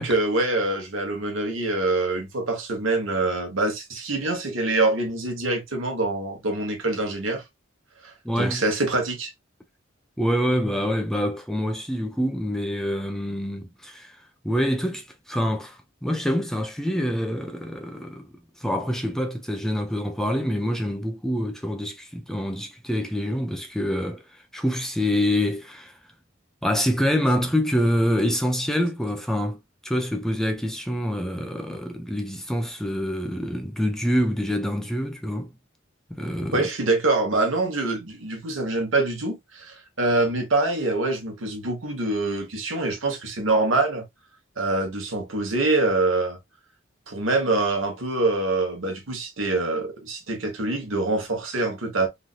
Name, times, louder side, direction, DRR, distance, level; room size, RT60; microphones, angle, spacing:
voice 1, 0.0-7.4 8.0-9.3 36.5-44.0 44.6-46.4 47.1-52.1, right 2 dB, 75° right, 1.2 m, -25 dB
voice 2, 8.2-8.6 10.2-14.2 14.4-18.3 18.6-25.9 26.6-35.5 36.1-36.7, equal, ahead, 0.4 m, -26 dB
3.2 x 2.6 x 2.4 m
head